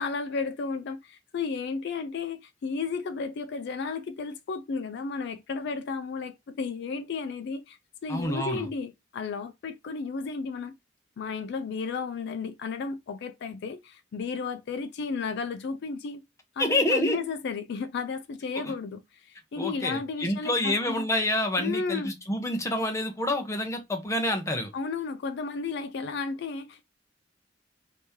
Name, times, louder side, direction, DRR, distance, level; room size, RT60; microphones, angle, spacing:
voice 1, 0.0-10.7 11.2-16.2 16.6-21.1 21.6-22.1 24.7-26.8, left 4 dB, 65° left, 0.4 m, -33 dB
voice 2, 8.1-8.7 16.6-17.2 18.6-18.7 19.6-24.7, left 1 dB, 15° left, 0.8 m, -28 dB
3.0 x 2.7 x 3.5 m
head